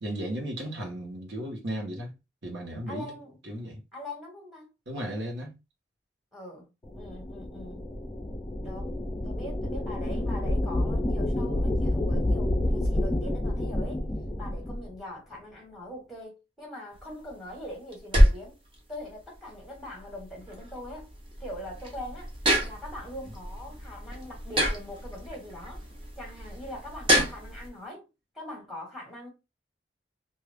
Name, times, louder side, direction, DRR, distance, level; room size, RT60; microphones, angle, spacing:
voice 1, 0.0-2.1 2.4-3.2 3.4-3.8 4.9-5.5, right 1 dB, 80° right, 1.2 m, -35 dB
voice 2, 2.9-3.4 3.9-4.7 6.3-7.8 8.6-9.0 9.2-14.0 14.4-18.6 18.9-21.1 21.4-22.3 22.6-25.8 26.1-28.1 28.3-29.3, left 1 dB, ahead, 1.3 m, -42 dB
sound 1, 6.8-14.9, left 1 dB, 20° left, 0.4 m, -29 dB
sound 2, 16.9-27.7, equal, 30° right, 0.8 m, -28 dB
2.6 x 2.4 x 3.4 m
head